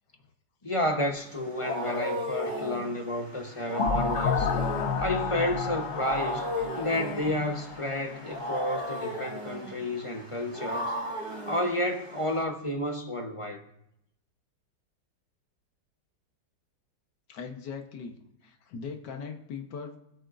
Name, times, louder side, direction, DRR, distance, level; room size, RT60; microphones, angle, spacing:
voice 1, 0.6-4.5 5.0-6.5 6.8-10.9 11.5-13.6, left 1 dB, 25° left, 0.9 m, -31 dB
Wild animals, 1.2-12.4, equal, 30° right, 3.2 m, -35 dB
sound 1, 3.8-8.5, left 6 dB, 55° left, 0.9 m, -31 dB
voice 2, 17.3-18.2 18.4-20.0, left 5 dB, 70° left, 1.8 m, -39 dB
24.5 x 8.8 x 2.6 m
omnidirectional pair, 1.9 m